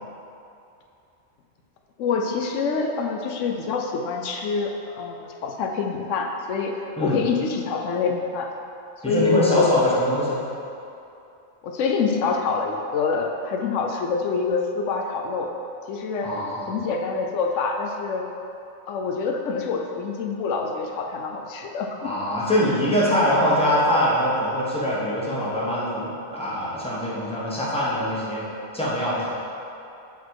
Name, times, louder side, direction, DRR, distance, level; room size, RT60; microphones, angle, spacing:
voice 1, 2.0-8.5 9.1-9.8 11.6-15.5 15.9-16.4 16.7-18.3 18.9-22.1, left 4 dB, 80° left, 2 dB, 0.9 m, -26 dB
voice 2, 9.0-10.4 16.2-16.7 22.0-28.5 28.7-29.3, equal, 5° left, -7 dB, 1.2 m, -23 dB
7.2 x 4.0 x 4.7 m, 2.7 s
omnidirectional pair, 1.3 m